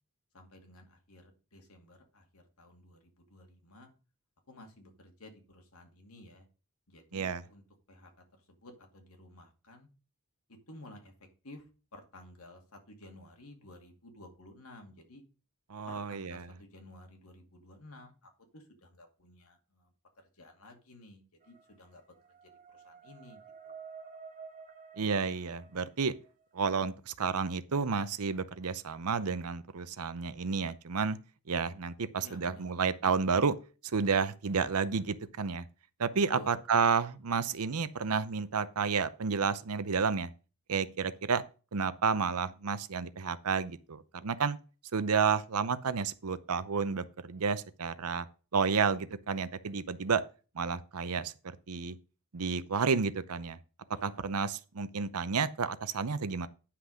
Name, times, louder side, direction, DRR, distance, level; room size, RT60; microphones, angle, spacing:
voice 1, 0.3-3.9 4.5-6.5 6.9-7.6 7.9-8.1 8.5-9.9 10.5-11.1 11.4-11.6 11.9-15.2 15.9-18.1 18.5-19.9 20.4-22.0 22.4-23.7 32.1-32.7 36.3-36.6 53.9-54.2, left 1 dB, 75° left, 2.3 m, -53 dB
voice 2, 7.1-7.4 15.7-16.5 25.0-26.1 26.5-31.2 31.5-33.6 33.9-35.6 36.0-40.3 40.7-41.4 41.7-44.6 44.9-48.3 48.5-50.2 50.5-51.3 51.7-52.0 52.3-53.6 54.0-56.5, right 5 dB, 85° right, 0.7 m, -31 dB
sound 1, 21.4-26.4, right 5 dB, 40° right, 1.3 m, -51 dB
9.8 x 5.9 x 5.0 m
head